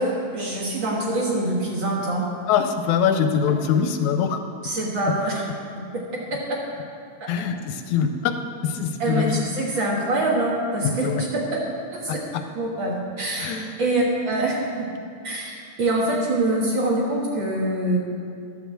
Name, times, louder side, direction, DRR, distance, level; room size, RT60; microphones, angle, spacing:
voice 1, 0.0-2.2 4.6-5.4 6.3-6.6 9.0-11.4 11.9-12.2 12.6-14.6 15.2-18.0, right 1 dB, 50° right, -3 dB, 1.8 m, -24 dB
voice 2, 2.5-4.4 7.3-8.3 8.6-9.4 10.8-11.2 12.1-12.4 13.4-13.8, left 7 dB, 85° left, 7 dB, 2.0 m, -23 dB
11.5 x 6.1 x 7.4 m, 2.3 s
omnidirectional pair, 3.4 m